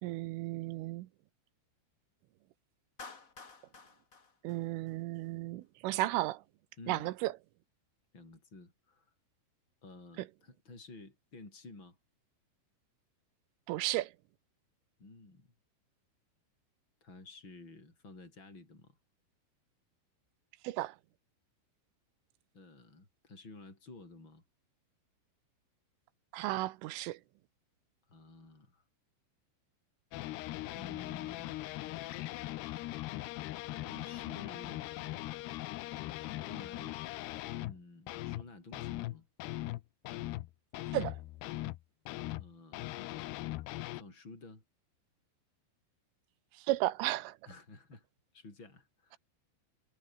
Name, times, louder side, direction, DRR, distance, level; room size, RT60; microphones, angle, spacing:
voice 1, 0.0-1.1 4.4-6.4 6.9-7.3 13.7-14.1 20.6-21.0 26.3-27.2 40.9-41.2 46.6-47.4, right 17 dB, 80° right, 3.4 m, -34 dB
Clapping, 3.0-5.3, left 4 dB, 50° left, 0.9 m, -52 dB
voice 2, 6.8-7.1 8.1-9.1 9.8-12.0 15.0-15.5 17.0-19.0 22.5-24.4 28.1-28.8 30.7-31.6 33.8-34.9 36.5-37.0 37.6-39.2 42.4-43.2 44.0-44.6 47.5-48.1 48.3-49.2, left 3 dB, 20° left, 8.4 m, -52 dB
sound 1, 30.1-37.8 38.1-38.5 38.7-41.8 42.1-44.0, left 17 dB, 85° left, 2.4 m, -40 dB
omnidirectional pair, 5.9 m